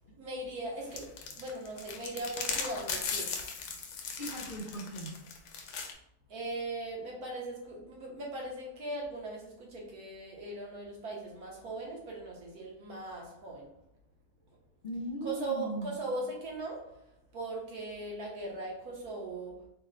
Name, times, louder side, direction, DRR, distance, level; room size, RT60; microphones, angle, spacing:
voice 1, 0.1-3.5 6.3-13.8 15.2-19.7, right 2 dB, 70° right, -2 dB, 1.4 m, -39 dB
sound 1, 0.9-5.9, left 5 dB, 75° left, 1.1 m, -37 dB
voice 2, 4.2-5.1 14.8-15.9, right 1 dB, 60° left, -5 dB, 0.5 m, -38 dB
3.5 x 2.1 x 3.8 m, 0.76 s
omnidirectional pair, 1.7 m